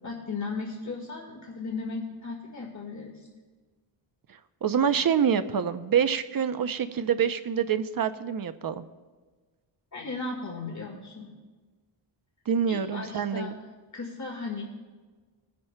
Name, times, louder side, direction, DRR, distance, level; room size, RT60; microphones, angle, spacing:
voice 1, 0.0-3.3 9.9-11.3 12.7-13.5 13.9-14.6, left 4 dB, 35° left, 0 dB, 1.7 m, -36 dB
voice 2, 4.6-8.9 12.5-13.5, right 7 dB, 45° right, 11 dB, 0.6 m, -26 dB
21.5 x 10.5 x 2.2 m, 1.4 s
wide cardioid pair, 100°, 49 cm